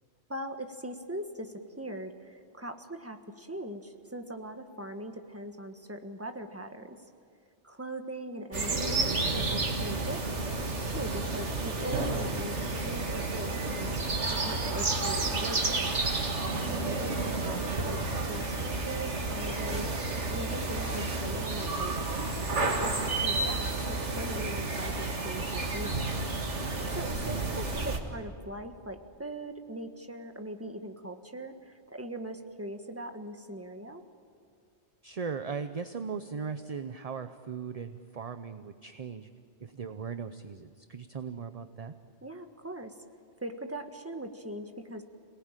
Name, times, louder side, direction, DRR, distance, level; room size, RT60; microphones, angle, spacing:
voice 1, 0.3-7.0 7.6-10.2 10.9-12.5 12.9-13.9 14.3-15.9 16.6-19.9 20.3-22.4 22.8-26.1 26.9-34.0 42.2-42.9 43.4-45.0, right 1 dB, 10° right, 5 dB, 1.5 m, -40 dB
sound 1, 8.5-28.0, right 3 dB, 85° right, 2.3 m, -31 dB
voice 2, 35.0-39.3 39.6-41.9, right 5 dB, 40° right, 9 dB, 0.7 m, -38 dB
27.5 x 19.0 x 9.1 m, 2.2 s
omnidirectional pair, 1.2 m